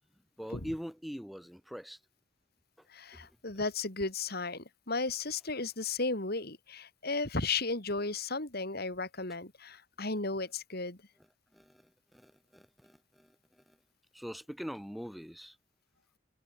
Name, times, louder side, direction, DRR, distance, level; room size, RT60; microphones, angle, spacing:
voice 1, 0.4-2.0 2.8-2.9 3.1-3.3 11.5-13.8 14.1-15.6, equal, ahead, 3.6 m, -43 dB
voice 2, 2.9-11.0, left 3 dB, 55° left, 3.7 m, -34 dB
head